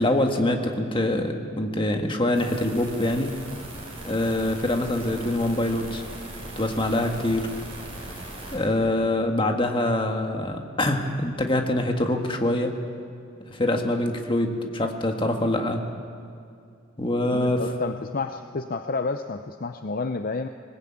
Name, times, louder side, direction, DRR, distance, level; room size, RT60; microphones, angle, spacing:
voice 1, 0.0-3.3 4.0-6.0 6.6-7.5 8.5-12.7 13.5-15.8 17.0-17.6, left 1 dB, 25° left, 4 dB, 1.7 m, -24 dB
sound 1, 2.3-8.6, right 1 dB, 30° right, 6.5 m, -39 dB
voice 2, 17.3-20.5, left 3 dB, 45° left, 8 dB, 0.6 m, -30 dB
20.0 x 20.0 x 8.6 m, 2.3 s
head